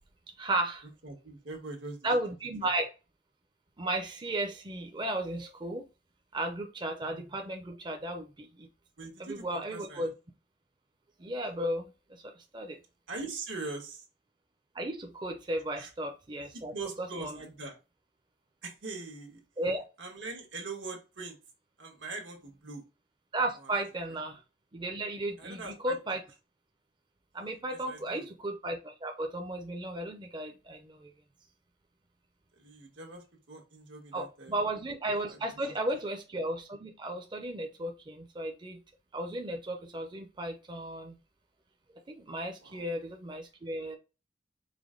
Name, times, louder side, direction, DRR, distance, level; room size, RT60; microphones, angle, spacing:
voice 1, 0.4-0.9 2.0-2.9 3.8-5.8 6.3-8.7 9.2-10.1 11.2-12.2 12.5-12.8 14.7-16.7 17.0-17.4 19.6-19.8 23.3-24.4 24.7-26.2 27.3-31.1 34.1-38.8 39.1-41.2 42.1-44.0, right 1 dB, 25° right, 3 dB, 0.5 m, -34 dB
voice 2, 1.0-2.1 9.0-10.1 13.1-14.0 15.8-15.9 16.5-17.8 18.6-19.4 20.0-21.3 21.8-22.8 23.6-23.8 25.4-26.0 27.7-28.3 32.6-34.5 35.3-35.7 42.6-42.9, right 3 dB, 90° right, 1 dB, 1.4 m, -42 dB
5.0 x 2.2 x 3.7 m, 0.30 s
head